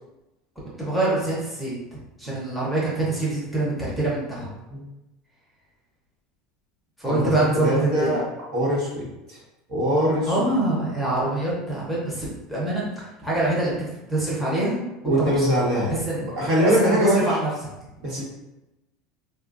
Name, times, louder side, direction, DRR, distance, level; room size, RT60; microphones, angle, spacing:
voice 1, 0.8-1.7 2.2-4.5 7.0-8.2 10.3-13.7 14.0-15.4 16.0-16.2 16.6-17.5, right 2 dB, ahead, -7 dB, 0.8 m, -25 dB
voice 2, 7.0-8.2 8.5-9.4 9.7-10.4 15.0-17.4 18.0-18.2, equal, 60° right, -5 dB, 1.2 m, -23 dB
3.6 x 2.4 x 2.5 m, 0.96 s
supercardioid pair, 155°, 0 cm